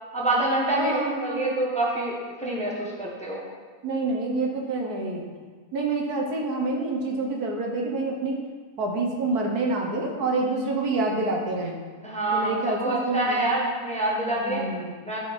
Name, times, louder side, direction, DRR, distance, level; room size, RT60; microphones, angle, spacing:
voice 1, 0.1-3.4 12.0-14.6 15.0-15.2, right 1 dB, 5° left, -4 dB, 1.4 m, -26 dB
voice 2, 0.8-1.5 3.8-5.2 5.7-8.4 8.8-11.8 12.3-13.5 14.4-14.9, right 3 dB, 70° right, 0 dB, 1.7 m, -27 dB
12.5 x 5.7 x 4.4 m, 1.5 s
omnidirectional pair, 1.7 m